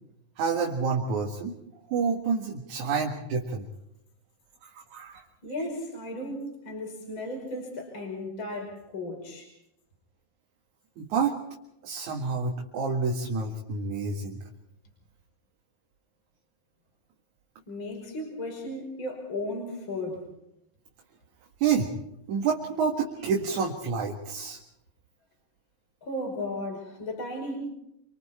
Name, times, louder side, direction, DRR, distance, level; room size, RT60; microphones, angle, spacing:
voice 1, 0.4-1.5 1.9-3.7 4.6-5.2 11.0-11.3 11.8-14.4 21.6-21.9 22.3-24.6, right 5 dB, 60° right, 0 dB, 3.2 m, -28 dB
voice 2, 5.4-9.5 17.7-20.2 26.0-27.6, left 1 dB, 35° left, 1 dB, 6.0 m, -35 dB
28.0 x 25.0 x 4.4 m, 0.81 s
omnidirectional pair, 3.9 m